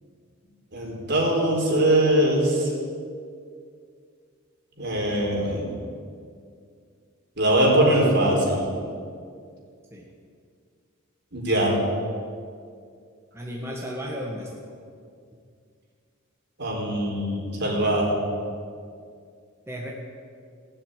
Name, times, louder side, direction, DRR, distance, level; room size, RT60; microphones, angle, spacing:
voice 1, 0.7-2.7 4.8-5.7 7.4-8.7 11.3-11.7 16.6-18.2, right 1 dB, 55° right, -2 dB, 4.1 m, -22 dB
voice 2, 13.3-14.5 19.7-19.9, equal, 10° right, -3 dB, 1.5 m, -33 dB
17.0 x 7.9 x 9.1 m, 2.2 s
head